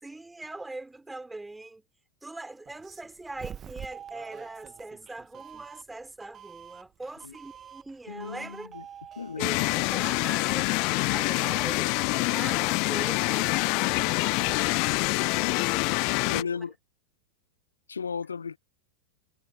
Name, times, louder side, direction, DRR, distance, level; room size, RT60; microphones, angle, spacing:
voice 1, 0.0-1.9 2.2-8.7 9.4-16.5, right 2 dB, 5° right, 5.4 m, -42 dB
Doorbell, 2.7-15.5, right 9 dB, 25° right, 1.8 m, -47 dB
voice 2, 8.1-8.8 9.2-9.9 16.3-16.7 17.9-18.6, left 6 dB, 75° left, 0.8 m, -36 dB
sound 1, 9.4-16.4, left 34 dB, 45° left, 0.9 m, -26 dB
figure-of-eight pair, 90°, 0 cm